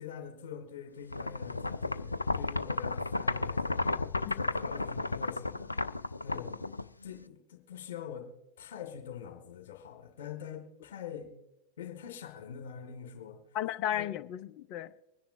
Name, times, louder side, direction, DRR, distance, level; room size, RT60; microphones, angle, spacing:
voice 1, 0.0-3.9 4.3-5.7 6.2-6.5 7.0-8.3 8.6-11.3 11.8-13.4 13.9-14.1, left 8 dB, 60° left, 2.1 m, -44 dB
sound 1, 1.1-7.2, left 3 dB, 80° left, 0.4 m, -33 dB
voice 2, 13.5-14.9, left 11 dB, 40° left, 0.6 m, -35 dB
24.0 x 10.0 x 2.6 m
figure-of-eight pair, 90°, 0 cm